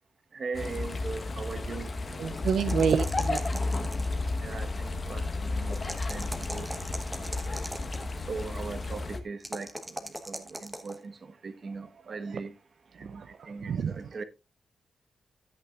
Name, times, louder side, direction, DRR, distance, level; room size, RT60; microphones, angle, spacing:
voice 1, 0.3-1.9 4.4-5.8 6.1-6.7 7.3-7.6 8.3-9.7 10.0-11.2 11.4-12.5 13.0-14.2, right 4 dB, 40° right, 1.1 m, -39 dB
sound 1, 0.5-9.2, left 3 dB, 30° left, 1.1 m, -32 dB
voice 2, 2.1-3.4 13.1-13.9, right 7 dB, 75° right, 0.5 m, -28 dB
sound 2, 2.4-4.3 5.7-8.0 9.4-11.0, right 1 dB, 10° right, 1.2 m, -39 dB
13.5 x 8.7 x 2.4 m
wide cardioid pair, 180°, 0 cm